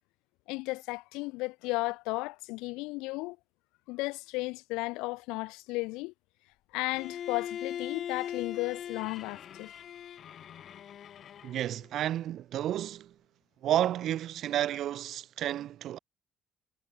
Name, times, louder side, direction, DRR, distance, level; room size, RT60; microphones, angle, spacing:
voice 1, 0.5-3.4 3.9-6.1 6.7-9.7, left 23 dB, 85° left, 0.8 m, -34 dB
Bowed string instrument, 6.9-11.9, left 9 dB, 60° left, 0.3 m, -40 dB
voice 2, 11.4-13.1 13.6-16.0, right 12 dB, 70° right, 1.0 m, -31 dB
supercardioid pair, 60°, 0 cm